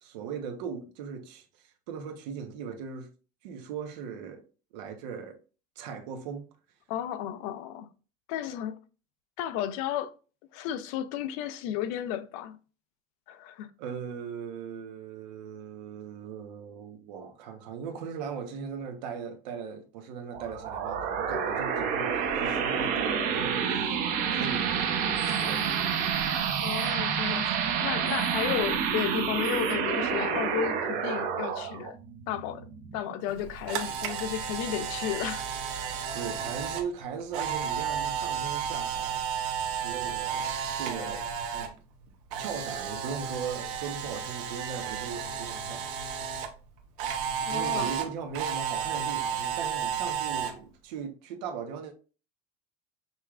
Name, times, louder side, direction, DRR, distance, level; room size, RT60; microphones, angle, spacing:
voice 1, 0.0-3.1 3.4-4.4 4.7-5.4 5.8-6.5 13.8-24.0 24.3-25.8 36.1-39.2 39.8-41.8 42.4-45.9 47.5-51.9, right 6 dB, 90° right, 1.0 m, -39 dB
voice 2, 6.9-7.9 8.3-8.8 9.4-10.1 10.5-12.6 13.3-13.7 26.6-27.5 27.8-32.0 32.3-32.6 32.9-35.4 47.4-47.9, left 11 dB, 60° left, 0.5 m, -33 dB
sound 1, 20.3-33.5, right 7 dB, 40° right, 0.7 m, -29 dB
Camera, 33.3-41.7 42.0-46.5 47.0-50.5, right 8 dB, 65° right, 1.0 m, -32 dB
5.5 x 3.3 x 2.4 m
cardioid pair, 170°, 21 cm